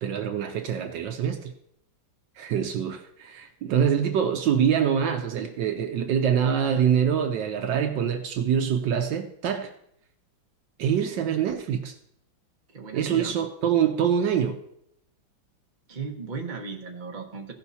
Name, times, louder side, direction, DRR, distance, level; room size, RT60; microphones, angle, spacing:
voice 1, 0.0-1.5 2.4-9.7 10.8-11.9 12.9-14.6, right 8 dB, 70° right, 6 dB, 1.4 m, -25 dB
voice 2, 12.7-13.4 15.9-17.5, right 4 dB, 25° right, 1 dB, 1.3 m, -36 dB
16.0 x 5.8 x 4.2 m, 0.73 s
omnidirectional pair, 2.1 m